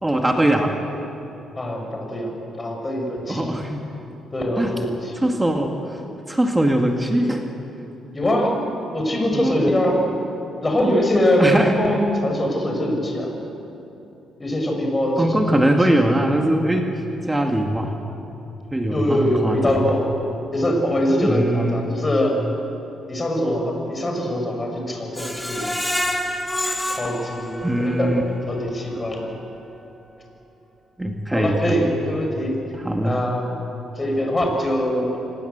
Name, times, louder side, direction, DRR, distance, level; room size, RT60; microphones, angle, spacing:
voice 1, 0.0-0.8 3.3-3.8 4.6-4.8 5.2-6.0 6.3-7.5 9.3-9.6 11.4-11.7 15.2-16.9 17.2-18.0 18.7-19.9 21.2-22.0 27.6-28.2 31.0-31.8 32.8-33.2, right 1 dB, 10° right, 2 dB, 2.1 m, -21 dB
voice 2, 1.5-3.5 4.3-5.3 8.1-8.6 8.9-10.0 10.6-13.3 14.4-15.7 18.9-20.1 20.5-22.5 23.1-25.7 26.9-28.1 28.5-29.3 31.3-32.6 33.0-33.5 34.0-35.2, left 1 dB, 25° left, 2 dB, 6.0 m, -23 dB
Screech, 25.2-28.1 28.6-28.7 29.1-29.2, left 1 dB, 10° left, 2.3 m, -27 dB
26.0 x 20.0 x 8.1 m, 2.9 s
cardioid pair, 90°, 0 cm